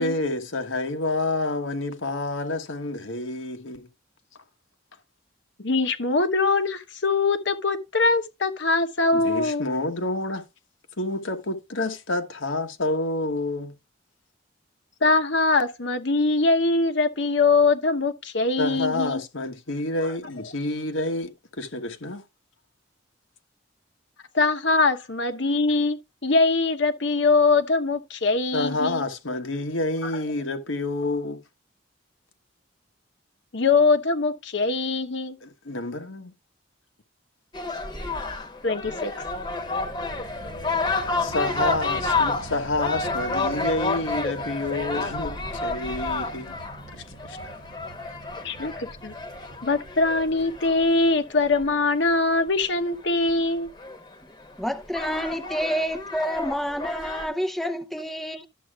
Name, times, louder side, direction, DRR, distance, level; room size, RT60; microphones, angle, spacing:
voice 1, 0.0-3.9 9.1-10.5 11.0-13.7 18.6-22.2 28.5-31.4 35.4-36.3 41.2-46.6 46.9-47.5, left 2 dB, 85° left, 1.4 m, -28 dB
voice 2, 5.6-9.6 15.0-19.2 20.0-20.1 24.3-29.1 30.0-30.2 33.5-35.4 38.6-39.1 48.4-49.1 49.6-53.7, left 3 dB, 65° left, 1.0 m, -22 dB
sound 1, 37.5-51.8 53.3-53.4 53.8-54.2 54.8-57.3, left 3 dB, 20° left, 1.1 m, -30 dB
sound 2, 39.3-51.7, right 3 dB, 45° right, 0.6 m, -44 dB
voice 3, 54.6-58.5, equal, ahead, 0.5 m, -28 dB
12.0 x 7.7 x 2.4 m
head